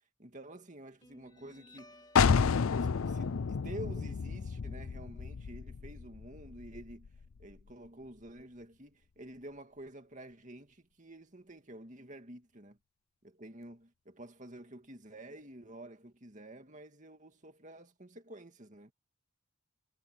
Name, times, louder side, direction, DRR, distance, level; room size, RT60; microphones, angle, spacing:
voice 1, 0.2-2.0 2.8-7.1 7.4-12.8 13.2-18.9, right 1 dB, 35° right, 2.4 m, -49 dB
Guitar, 1.0-8.0, left 1 dB, 20° left, 4.1 m, -62 dB
sound 1, 2.2-7.7, left 5 dB, 80° left, 0.5 m, -31 dB
head